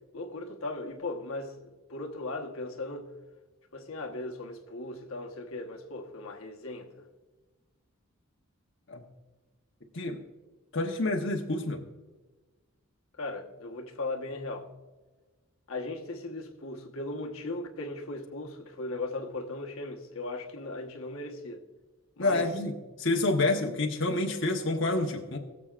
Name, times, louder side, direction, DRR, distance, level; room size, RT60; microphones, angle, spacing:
voice 1, 0.1-3.1 3.7-6.9 13.2-14.7 15.7-21.6 22.2-22.5, left 2 dB, 75° left, 1.2 m, -37 dB
voice 2, 10.7-11.8 22.2-25.4, left 2 dB, 60° left, 1.1 m, -28 dB
21.5 x 7.3 x 2.4 m
head